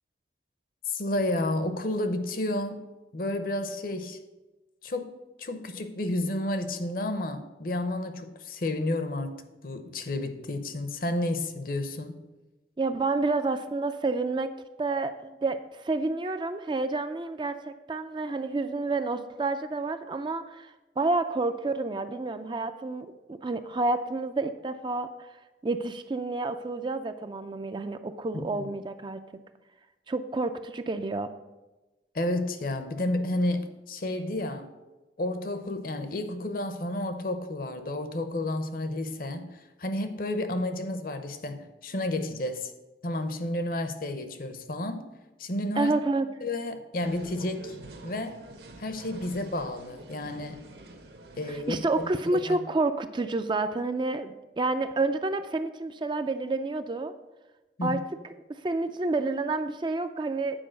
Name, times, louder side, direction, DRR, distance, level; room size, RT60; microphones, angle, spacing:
voice 1, 0.9-2.8 3.1-4.2 4.8-5.1 5.4-12.2 28.3-28.7 32.1-34.7 35.2-39.5 39.8-42.7 43.0-45.1 45.4-45.9 46.4-47.7 48.0-48.4 48.8-50.6 51.4-52.6 57.8-58.0, left 1 dB, 50° left, 0.7 m, -31 dB
voice 2, 12.8-14.5 14.8-25.3 25.6-29.2 30.1-31.3 45.8-46.3 51.5-57.1 57.8-58.0 58.6-60.7, right 3 dB, 25° right, 0.4 m, -29 dB
sound 1, 47.0-52.2, right 2 dB, 65° right, 1.1 m, -47 dB
9.0 x 4.7 x 6.4 m
head